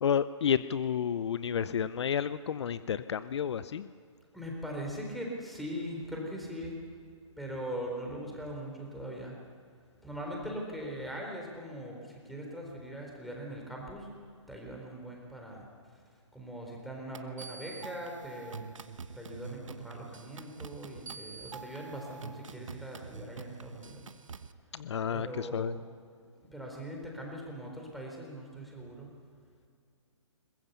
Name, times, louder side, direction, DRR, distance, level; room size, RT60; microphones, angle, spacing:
voice 1, 0.0-3.9 24.7-25.7, left 8 dB, 60° left, 15 dB, 0.7 m, -31 dB
voice 2, 4.3-6.8 7.4-9.4 10.0-14.1 14.5-16.0 16.3-18.7 19.1-24.1 25.1-25.8 26.4-29.1, equal, ahead, -1 dB, 4.1 m, -41 dB
sound 1, 17.1-24.5, right 5 dB, 75° right, 1.1 m, -46 dB
22.5 x 21.0 x 6.9 m, 2.2 s
hypercardioid pair, 140°, 16 cm